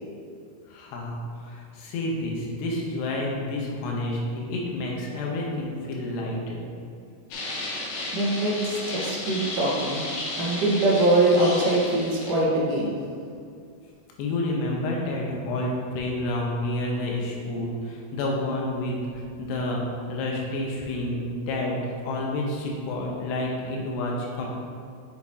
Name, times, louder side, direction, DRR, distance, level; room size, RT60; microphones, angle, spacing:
voice 1, 0.7-6.6 14.2-21.7 22.0-24.5, left 1 dB, 85° left, -2 dB, 3.1 m, -29 dB
sound 1, 7.3-12.3, left 2 dB, 70° left, 2.4 m, -33 dB
voice 2, 8.1-10.0 10.4-12.9, right 1 dB, 90° right, -5 dB, 1.3 m, -23 dB
7.7 x 6.3 x 2.8 m, 2.3 s
omnidirectional pair, 4.8 m